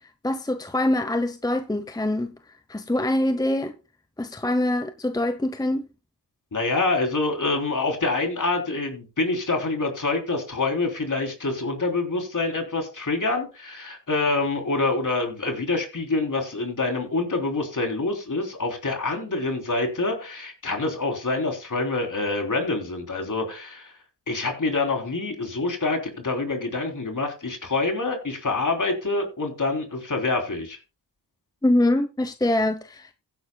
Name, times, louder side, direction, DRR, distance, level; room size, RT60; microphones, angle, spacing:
voice 1, 0.2-2.3 2.7-3.7 4.2-5.9 31.6-33.1, left 1 dB, 10° left, 0.9 m, -24 dB
voice 2, 6.5-23.9 24.3-30.8, left 3 dB, 45° left, 3.5 m, -26 dB
16.0 x 10.0 x 2.3 m
cardioid pair, 55°, 42 cm